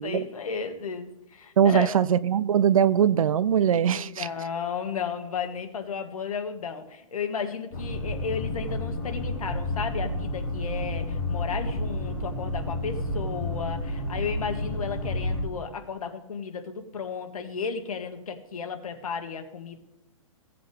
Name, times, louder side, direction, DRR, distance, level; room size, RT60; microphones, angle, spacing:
voice 1, 0.0-1.9 3.9-19.8, left 6 dB, 85° left, 6 dB, 1.8 m, -34 dB
voice 2, 1.6-4.3, right 9 dB, 75° right, 18 dB, 0.6 m, -21 dB
sound 1, 7.7-15.4, left 1 dB, 25° left, 2.3 m, -30 dB
16.5 x 7.8 x 3.5 m, 0.87 s
hypercardioid pair, 175°, 18 cm